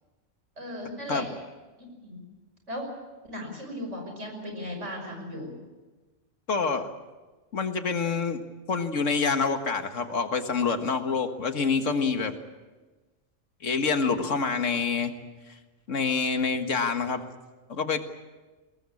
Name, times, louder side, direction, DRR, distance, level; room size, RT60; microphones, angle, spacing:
voice 1, 0.6-1.3 1.8-2.2 2.7-2.9 3.2-5.5, equal, 70° right, 3 dB, 6.2 m, -36 dB
voice 2, 6.5-6.9 7.5-8.4 8.7-12.3 13.6-15.1 15.9-17.2 17.7-18.0, left 5 dB, 85° left, 7 dB, 1.9 m, -26 dB
23.0 x 19.0 x 8.6 m, 1.2 s
omnidirectional pair, 1.3 m